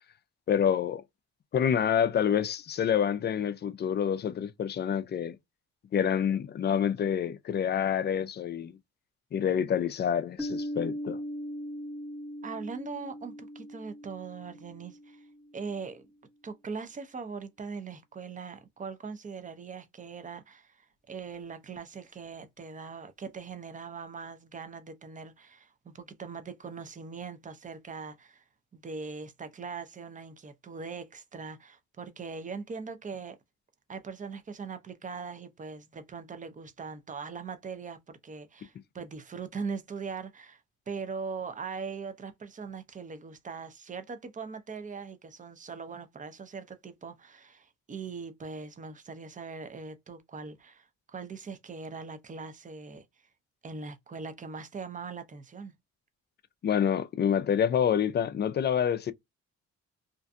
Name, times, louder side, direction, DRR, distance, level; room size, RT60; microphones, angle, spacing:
voice 1, 0.5-1.0 1.5-5.4 5.9-8.8 9.3-11.2 56.6-59.1, left 8 dB, 35° left, 0.4 m, -27 dB
Piano, 10.4-15.8, equal, ahead, 0.9 m, -39 dB
voice 2, 12.4-15.3 15.5-16.1 16.4-28.4 28.7-33.4 33.9-40.6 40.9-53.0 53.6-55.7, right 5 dB, 25° right, 0.6 m, -41 dB
2.5 x 2.2 x 2.5 m
cardioid pair, 90°, 30 cm